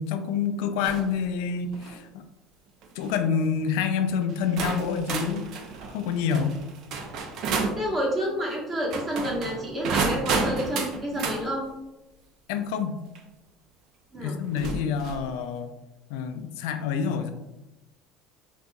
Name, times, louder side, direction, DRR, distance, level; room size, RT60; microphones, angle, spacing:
voice 1, 0.0-2.1 3.0-5.5 5.9-6.6 12.5-13.0 14.2-15.7 16.1-17.3, left 6 dB, 80° left, 8 dB, 0.4 m, -27 dB
sound 1, 0.8-1.1 1.6-2.0 2.8-3.1 4.0-4.1 4.6-7.8 8.8-11.4 13.2-13.3 14.5-15.3, right 4 dB, 60° right, 0.5 m, -31 dB
voice 2, 7.8-11.6 14.1-14.4, equal, 30° right, -3 dB, 1.2 m, -29 dB
4.0 x 2.6 x 2.3 m, 0.98 s
supercardioid pair, 105°, 0 cm